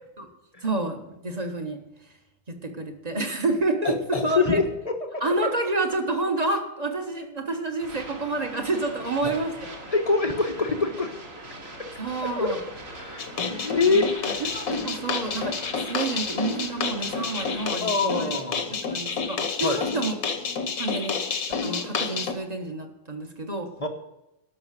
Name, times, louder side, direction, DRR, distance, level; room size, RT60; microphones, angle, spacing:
voice 1, 0.6-1.8 2.5-4.6 5.2-9.7 12.0-12.6 13.8-18.3 18.8-20.1 20.8-21.2 21.6-23.7, right 2 dB, 25° right, 4 dB, 1.1 m, -29 dB
voice 2, 3.8-5.5 9.2-9.3 9.9-11.1 12.2-12.6 13.0-14.1 17.8-18.7 19.6-19.8 23.8-23.9, left 3 dB, 25° left, 4 dB, 0.8 m, -25 dB
sound 1, 7.8-17.8, right 2 dB, 65° right, 3.2 m, -42 dB
sound 2, 13.2-22.3, left 5 dB, 50° left, 1.3 m, -29 dB
12.5 x 6.3 x 7.5 m, 0.87 s
omnidirectional pair, 2.1 m